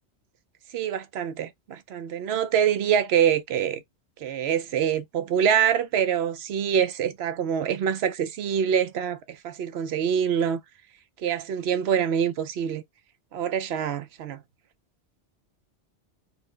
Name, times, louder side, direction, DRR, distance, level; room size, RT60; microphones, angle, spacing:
voice 1, 0.7-3.8 4.2-10.6 11.2-12.8 13.3-14.4, right 8 dB, 70° right, 0.8 m, -25 dB
4.4 x 2.0 x 3.8 m
omnidirectional pair, 1.2 m